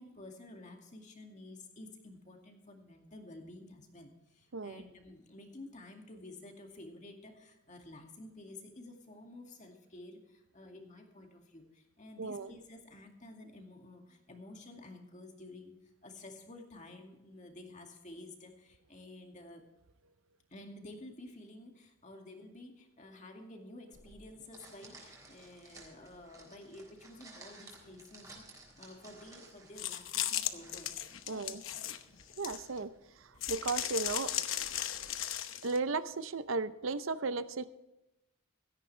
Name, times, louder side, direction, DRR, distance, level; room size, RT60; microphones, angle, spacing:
voice 1, 0.0-19.7 20.5-31.8, left 2 dB, 35° left, 3 dB, 2.2 m, -51 dB
voice 2, 12.2-12.5 31.3-31.6 32.4-32.9 33.5-34.3 35.6-37.7, right 4 dB, 70° right, 13 dB, 0.7 m, -35 dB
sound 1, 23.9-35.3, right 2 dB, 15° right, 3.7 m, -57 dB
sound 2, 29.8-32.8 33.4-35.8, left 11 dB, 70° left, 0.9 m, -36 dB
16.5 x 14.0 x 3.3 m, 0.93 s
head